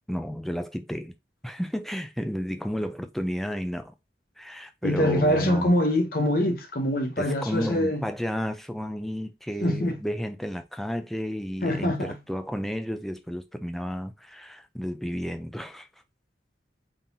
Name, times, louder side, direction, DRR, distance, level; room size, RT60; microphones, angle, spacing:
voice 1, 0.1-1.1 1.4-3.9 4.4-5.7 7.2-15.9, equal, ahead, 0.4 m, -32 dB
voice 2, 4.8-8.1 9.6-10.0 11.6-12.1, left 1 dB, 55° left, 0.9 m, -24 dB
3.8 x 2.9 x 3.8 m
head